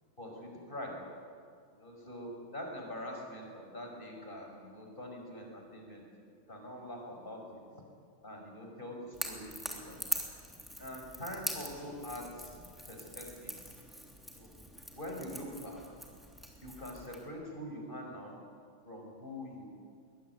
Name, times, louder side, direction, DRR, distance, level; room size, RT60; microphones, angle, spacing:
voice 1, 0.2-1.0 1.7-6.0 6.3-7.6 8.2-10.0 10.8-12.6 12.9-13.5 14.3-14.5 14.9-15.8 16.5-18.4 18.8-19.7, left 1 dB, 20° left, 0 dB, 5.8 m, -44 dB
Crackle / Crack, 9.1-17.3, equal, ahead, 3.0 m, -43 dB
22.0 x 21.0 x 9.5 m, 2.2 s
omnidirectional pair, 2.3 m